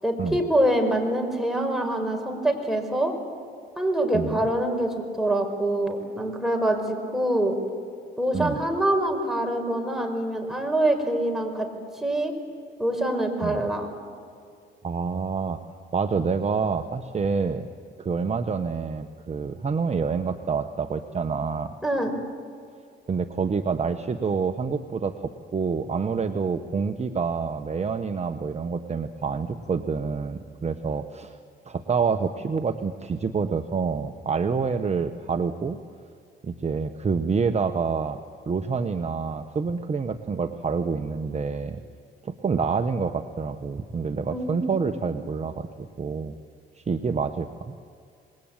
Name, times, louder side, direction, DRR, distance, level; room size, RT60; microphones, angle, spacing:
voice 1, 0.0-3.1 3.8-7.6 8.2-11.7 12.0-12.3 12.8-13.9 21.8-22.1 44.3-44.7, right 1 dB, ahead, 3 dB, 5.0 m, -25 dB
voice 2, 14.8-15.6 15.9-17.6 18.0-21.7 23.1-31.4 31.7-35.8 36.4-38.2 38.5-41.8 42.2-46.3 46.8-47.7, right 5 dB, 35° right, 7 dB, 1.1 m, -27 dB
26.5 x 21.0 x 9.0 m, 2.3 s
cardioid pair, 90°, 20 cm